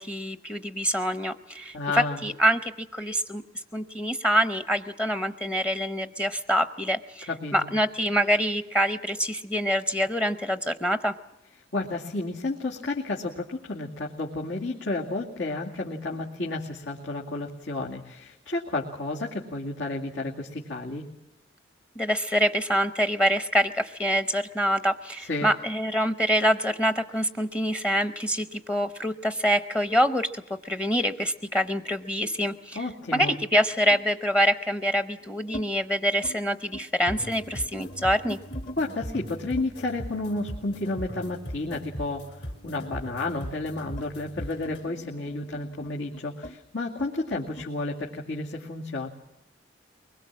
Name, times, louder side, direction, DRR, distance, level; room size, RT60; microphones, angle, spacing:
voice 1, 0.0-3.4 3.7-11.1 22.0-32.8 33.1-38.4, equal, 15° left, 9 dB, 0.7 m, -25 dB
voice 2, 1.7-2.2 7.3-7.7 11.7-21.0 25.2-25.5 32.7-33.4 38.8-49.1, left 2 dB, 90° left, -2 dB, 2.4 m, -31 dB
sound 1, 31.2-32.6 33.9-34.1 34.9-35.7 36.0-36.4 36.6-38.8 39.6-42.4 42.7-47.7, equal, 45° left, 1.2 m, -45 dB
sound 2, 37.1-44.9, equal, 70° left, 4.3 m, -39 dB
24.0 x 21.5 x 7.4 m, 0.91 s
head